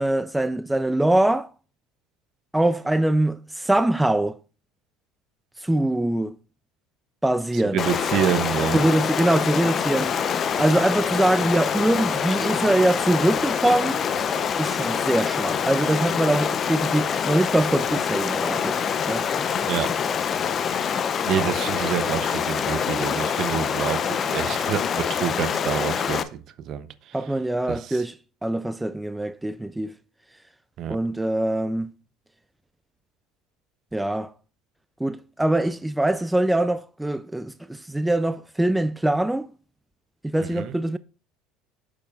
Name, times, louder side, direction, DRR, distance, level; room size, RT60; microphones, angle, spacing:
voice 1, 0.0-1.5 2.5-4.4 5.6-6.3 7.2-7.8 8.7-10.1 10.6-14.0 14.6-19.3 27.1-28.1 28.4-29.9 30.9-31.9 33.9-34.3 35.0-39.5 40.2-41.0, right 1 dB, 5° right, 0.4 m, -23 dB
voice 2, 7.5-8.8 19.7-19.9 21.3-27.2 27.7-28.0 30.8-31.0 40.4-40.8, right 9 dB, 55° right, 0.7 m, -27 dB
Stream, 7.8-26.2, left 7 dB, 40° left, 0.7 m, -25 dB
8.4 x 7.0 x 2.4 m
supercardioid pair, 90°, 0 cm